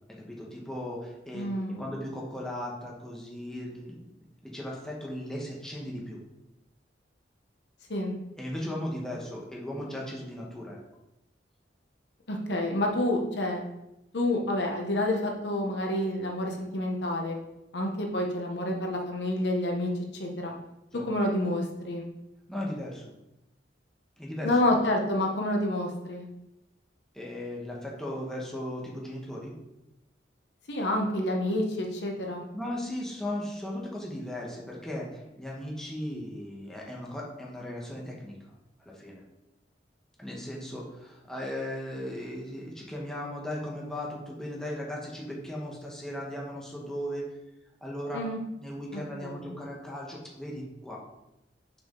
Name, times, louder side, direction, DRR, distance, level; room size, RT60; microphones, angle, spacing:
voice 1, 0.1-1.5 1.8-4.0 4.4-6.2 8.4-10.8 20.9-21.1 22.5-23.1 24.2-24.6 27.1-29.5 32.5-39.2 40.2-47.3 47.8-48.2 48.6-51.0, left 1 dB, 5° left, -3 dB, 1.2 m, -37 dB
voice 2, 1.3-1.9 7.9-8.1 12.3-13.6 14.1-17.4 17.7-20.5 21.0-22.0 24.4-26.3 30.7-32.4 48.1-48.4 48.9-49.5, left 1 dB, 65° left, 1 dB, 1.0 m, -28 dB
6.0 x 5.0 x 3.8 m, 0.90 s
head